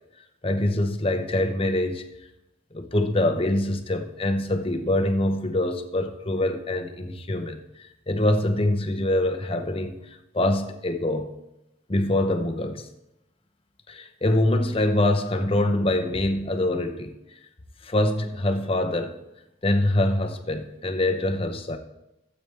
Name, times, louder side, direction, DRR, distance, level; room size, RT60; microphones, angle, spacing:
voice 1, 0.4-2.0 2.7-9.9 10.3-11.3 11.9-12.9 13.9-17.1 17.8-19.1 19.6-21.8, left 1 dB, 30° left, 6 dB, 0.9 m, -24 dB
12.5 x 8.0 x 3.4 m, 0.90 s
head